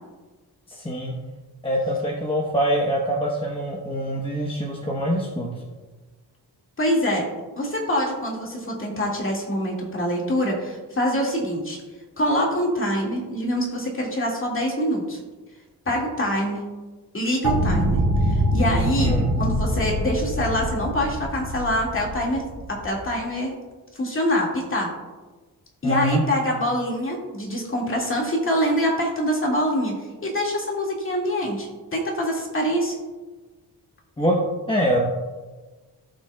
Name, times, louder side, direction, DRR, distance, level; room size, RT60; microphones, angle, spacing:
voice 1, 0.7-1.2 1.6-5.5 19.0-19.3 25.8-26.2 34.2-34.4 34.7-35.0, equal, 15° left, -2 dB, 1.0 m, -24 dB
voice 2, 6.8-7.3 7.6-11.8 12.2-15.2 15.9-16.6 17.1-22.4 22.7-23.5 24.0-24.9 25.8-30.0 30.2-32.9, equal, 30° left, -2 dB, 2.0 m, -25 dB
sound 1, 17.4-23.1, equal, 90° right, 2.5 m, -24 dB
17.0 x 5.9 x 2.3 m, 1.3 s
wide cardioid pair, 140°, 40 cm